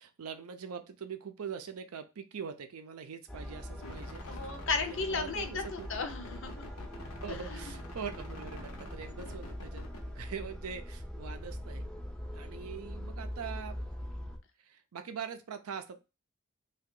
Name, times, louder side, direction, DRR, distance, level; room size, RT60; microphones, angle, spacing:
voice 1, 0.0-4.5 4.8-5.9 7.2-11.9 12.3-13.8 14.6-16.0, right 6 dB, 85° right, 9 dB, 0.5 m, -43 dB
sound 1, 3.3-14.4, equal, 5° left, 0.3 m, -42 dB
sound 2, 3.8-10.0, left 2 dB, 90° left, 0.8 m, -47 dB
voice 2, 4.3-6.6 7.5-7.6, left 4 dB, 60° left, 7 dB, 0.6 m, -34 dB
2.8 x 2.3 x 3.7 m, 0.28 s
head